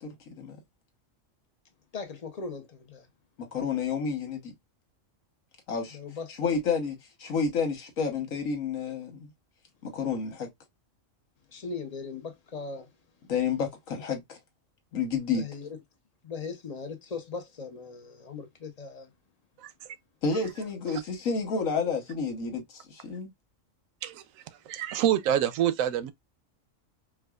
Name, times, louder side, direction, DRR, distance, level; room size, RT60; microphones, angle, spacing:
voice 1, 0.0-0.6 3.4-4.5 5.7-6.0 6.4-9.3 9.8-10.5 13.3-14.4 14.9-15.5 20.2-23.3, left 5 dB, 85° left, 1.5 m, -30 dB
voice 2, 1.9-3.1 5.9-6.5 11.5-12.9 15.3-15.8 16.2-19.1, left 4 dB, 40° left, 0.6 m, -39 dB
voice 3, 24.7-26.1, right 10 dB, 85° right, 1.0 m, -26 dB
4.7 x 2.2 x 2.3 m
omnidirectional pair, 1.4 m